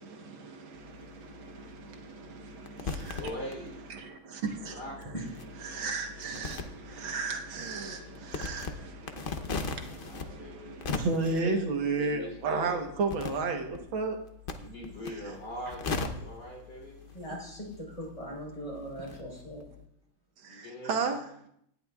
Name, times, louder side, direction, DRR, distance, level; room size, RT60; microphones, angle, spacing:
voice 1, 0.0-5.1 5.6-14.2 15.1-15.3 20.4-21.3, right 4 dB, 80° right, 3 dB, 2.0 m, -34 dB
sound 1, 0.7-4.1 4.4-19.9, left 4 dB, 90° left, 0.4 m, -41 dB
voice 2, 3.2-3.8 4.7-5.0 10.0-10.8 11.2-12.8 14.6-17.1 20.5-21.1, left 1 dB, 50° left, 0 dB, 3.9 m, -42 dB
voice 3, 17.1-19.6, equal, 15° left, -2 dB, 4.3 m, -40 dB
18.0 x 10.5 x 2.4 m, 0.73 s
omnidirectional pair, 2.2 m